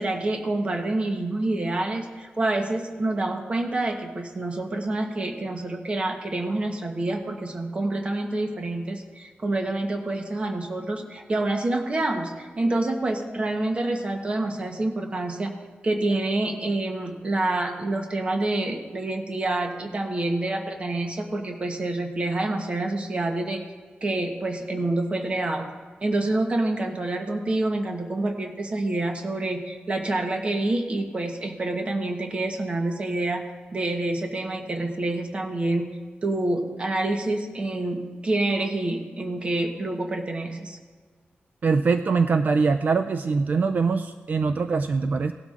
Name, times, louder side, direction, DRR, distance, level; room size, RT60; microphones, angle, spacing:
voice 1, 0.0-15.5 15.8-23.6 24.0-25.7 26.0-33.4 33.7-35.9 36.2-40.8, right 2 dB, 30° right, 3 dB, 0.9 m, -27 dB
voice 2, 41.6-45.3, right 4 dB, 45° right, 8 dB, 0.3 m, -23 dB
18.0 x 12.0 x 2.5 m, 1.5 s
wide cardioid pair, 175°, 4 cm